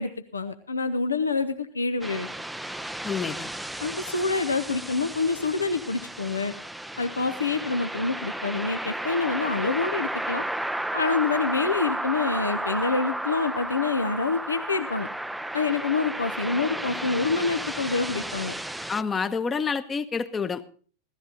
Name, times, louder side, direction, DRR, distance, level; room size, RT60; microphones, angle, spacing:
voice 1, 0.0-2.3 3.8-6.5 7.0-10.4 10.9-15.1 15.5-18.5, left 4 dB, 75° left, 8 dB, 0.9 m, -27 dB
sound 1, 2.0-19.0, right 1 dB, 5° right, 0.5 m, -33 dB
voice 2, 3.0-3.5 18.9-20.7, left 5 dB, 20° left, 13 dB, 1.0 m, -28 dB
16.5 x 13.5 x 3.9 m, 0.43 s
figure-of-eight pair, 90°, 0 cm